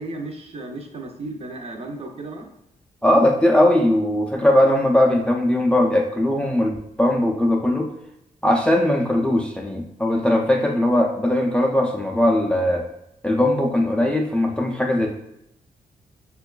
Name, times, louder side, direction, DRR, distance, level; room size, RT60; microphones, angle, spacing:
voice 1, 0.0-2.5, right 2 dB, 45° right, 3 dB, 0.5 m, -34 dB
voice 2, 3.0-7.9 8.4-12.8 13.2-15.1, left 1 dB, 5° left, 1 dB, 0.3 m, -19 dB
4.5 x 2.2 x 2.2 m, 0.80 s
cardioid pair, 110°, 15 cm